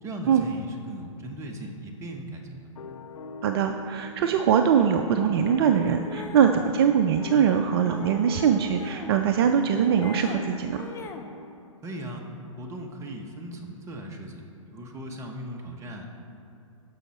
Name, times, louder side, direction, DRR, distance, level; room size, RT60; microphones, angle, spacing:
voice 1, 0.0-2.7 11.8-12.2 12.6-14.4 14.7-16.1, right 1 dB, 15° right, 2 dB, 1.1 m, -38 dB
sound 1, 2.8-11.7, left 5 dB, 75° left, 0.6 m, -42 dB
voice 2, 3.4-10.8, right 8 dB, 45° right, 6 dB, 0.4 m, -22 dB
sound 2, 5.8-6.8 7.8-9.2 9.5-10.4 10.7-11.3, left 4 dB, 15° left, 0.5 m, -41 dB
12.5 x 5.5 x 4.3 m, 2.7 s
hypercardioid pair, 120°, 17 cm